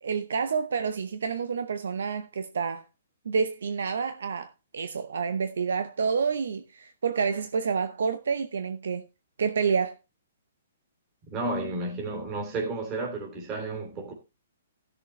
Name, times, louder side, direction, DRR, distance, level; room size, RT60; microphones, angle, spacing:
voice 1, 0.0-2.8 3.3-9.0 9.4-10.0, right 5 dB, 85° right, 0.8 m, -28 dB
voice 2, 11.3-14.1, right 2 dB, 25° right, 3.1 m, -32 dB
15.5 x 6.8 x 3.2 m
hypercardioid pair, 165°, 0 cm